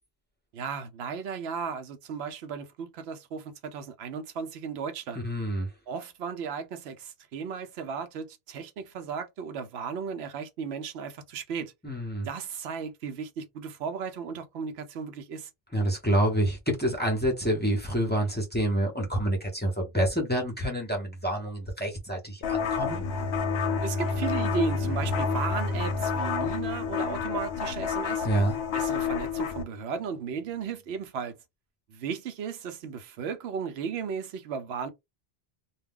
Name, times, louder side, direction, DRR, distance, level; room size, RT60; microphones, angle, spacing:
voice 1, 0.5-5.2 5.9-11.7 12.2-15.5 23.8-28.3 28.7-31.4 31.9-34.9, right 6 dB, 85° right, 0.9 m, -35 dB
voice 2, 5.2-5.7 11.8-12.3 15.7-23.0 28.2-28.6, right 1 dB, 10° left, 0.7 m, -27 dB
sound 1, 22.4-29.6, left 7 dB, 85° left, 0.9 m, -30 dB
Bowed string instrument, 22.8-27.5, left 1 dB, 45° right, 0.9 m, -32 dB
2.3 x 2.2 x 3.5 m
omnidirectional pair, 1.0 m